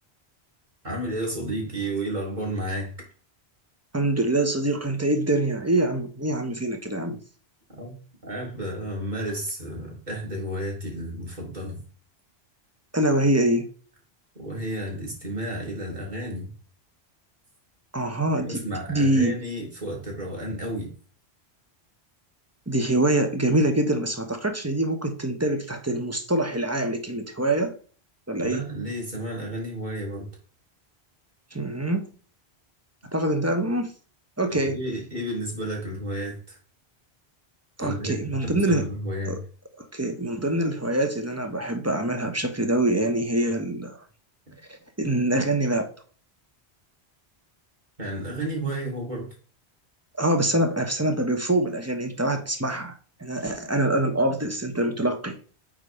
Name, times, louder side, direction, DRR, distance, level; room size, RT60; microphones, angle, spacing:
voice 1, 0.8-2.9 7.8-11.8 14.4-16.5 18.3-20.9 28.4-30.3 34.5-36.6 37.8-39.4 48.0-49.3, right 1 dB, 45° right, -2 dB, 2.9 m, -32 dB
voice 2, 3.9-7.2 12.9-13.6 17.9-18.6 18.9-19.3 22.7-27.7 28.3-28.6 31.5-32.0 33.1-33.9 34.4-34.8 37.8-38.9 39.3-39.4 39.8-44.0 44.7-45.9 50.2-52.9 53.2-55.4, right 1 dB, 15° right, 6 dB, 0.9 m, -24 dB
8.7 x 3.3 x 5.0 m, 0.41 s
omnidirectional pair, 1.1 m